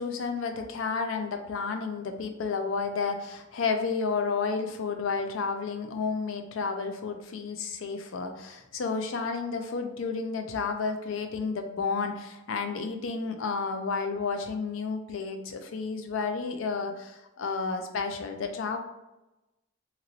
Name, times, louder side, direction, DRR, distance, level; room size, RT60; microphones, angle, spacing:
voice 1, 0.0-18.8, left 4 dB, 90° left, 6 dB, 0.4 m, -31 dB
3.0 x 2.9 x 2.6 m, 0.98 s
head